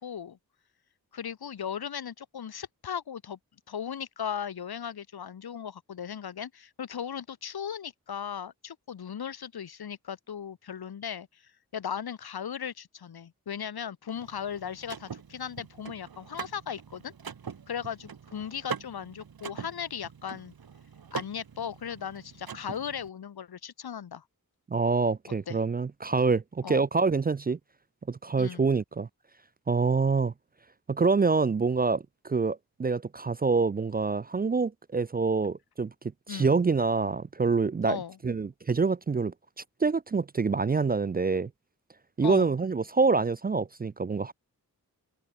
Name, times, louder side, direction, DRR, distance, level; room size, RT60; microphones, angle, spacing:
voice 1, 0.0-0.4 1.1-3.4 3.7-11.4 11.7-17.1 17.7-20.5 21.1-24.2 25.5-25.6 26.6-26.8 28.4-28.7 36.3-36.6 37.9-38.2 42.2-42.5, left 8 dB, 80° left, 1.2 m, -37 dB
Car / Mechanisms, 14.2-23.1, right 7 dB, 70° right, 1.5 m, -43 dB
voice 2, 24.7-27.6 28.1-29.1 29.7-30.3 30.9-35.9 36.3-38.0 38.2-39.3 39.8-41.5 42.2-44.3, right 4 dB, 25° right, 0.4 m, -26 dB
wide cardioid pair, 60°, 37 cm